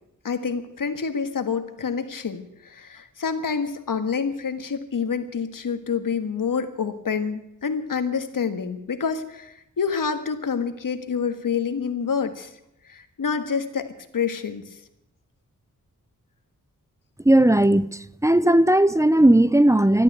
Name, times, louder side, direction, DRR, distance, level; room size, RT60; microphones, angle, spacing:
voice 1, 0.2-12.5 12.9-14.6, left 6 dB, 85° left, 1.7 m, -27 dB
voice 2, 17.2-20.0, right 1 dB, 10° right, 0.5 m, -17 dB
14.0 x 12.0 x 8.0 m
wide cardioid pair, 80°, 32 cm